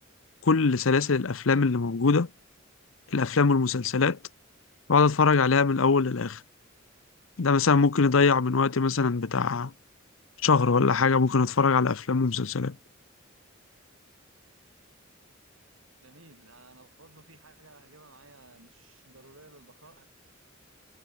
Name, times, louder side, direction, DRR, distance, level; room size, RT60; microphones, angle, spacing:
voice 1, 0.4-2.3 3.1-4.2 4.9-6.4 7.4-9.7 10.4-12.7, left 4 dB, 75° left, 0.7 m, -22 dB
voice 2, 16.0-20.0, right 2 dB, 75° right, 6.7 m, -55 dB
head